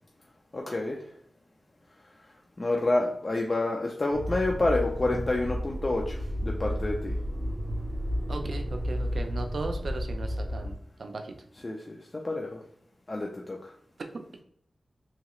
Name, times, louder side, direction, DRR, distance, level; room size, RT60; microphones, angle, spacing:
voice 1, 0.5-1.0 2.6-7.1 9.1-9.3 11.6-12.0 12.2-12.6 13.1-13.7, left 2 dB, 35° left, 0 dB, 0.3 m, -28 dB
Motor vehicle (road), 4.1-10.7, equal, 20° right, 0.6 m, -32 dB
voice 2, 8.3-10.7 11.0-11.3, right 3 dB, 65° right, 5 dB, 0.4 m, -36 dB
2.8 x 2.3 x 3.0 m, 0.66 s
wide cardioid pair, 100°, 0 cm